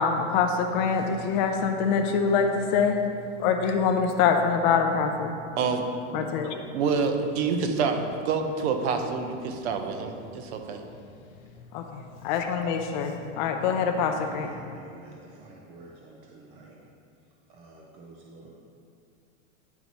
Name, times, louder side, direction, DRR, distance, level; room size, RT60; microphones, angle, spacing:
voice 1, 0.0-3.0 3.4-5.3 6.1-6.6 11.7-14.5, left 6 dB, 40° left, 5 dB, 0.5 m, -25 dB
voice 2, 5.6-6.3 6.7-10.8, right 5 dB, 60° right, 5 dB, 0.8 m, -27 dB
voice 3, 14.2-16.8 17.5-18.5, right 2 dB, 20° right, -2 dB, 0.4 m, -49 dB
9.7 x 4.6 x 4.0 m, 2.4 s
supercardioid pair, 160°, 37 cm